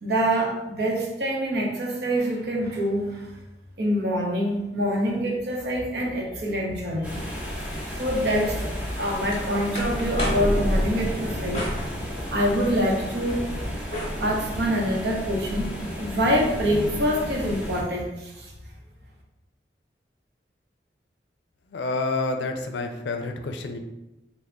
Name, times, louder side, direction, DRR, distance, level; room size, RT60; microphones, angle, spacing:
voice 1, 0.0-3.3 3.8-7.4 7.9-8.6 9.0-11.7 12.3-13.4 14.2-15.7 16.0-18.5, equal, 70° right, -1 dB, 0.8 m, -25 dB
sound 1, 7.0-17.8, equal, 10° right, 0.6 m, -31 dB
sound 2, 8.8-10.5 11.5-12.6 13.0-14.7, equal, 35° left, 0.8 m, -36 dB
voice 2, 21.7-23.8, left 3 dB, 85° left, 6 dB, 0.4 m, -28 dB
3.3 x 2.1 x 3.6 m, 0.97 s
head